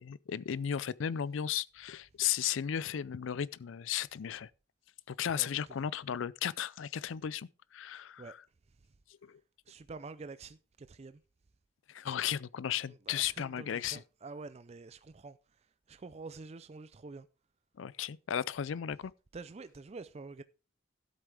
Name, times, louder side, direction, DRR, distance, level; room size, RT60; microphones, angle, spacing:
voice 1, 0.0-4.5 5.1-8.3 9.2-9.4 11.9-14.0 17.8-19.1, left 9 dB, 80° left, 0.4 m, -35 dB
voice 2, 9.7-11.2 12.9-15.6 15.9-17.3 19.3-20.4, right 3 dB, 30° right, 0.4 m, -47 dB
12.5 x 8.2 x 3.4 m
head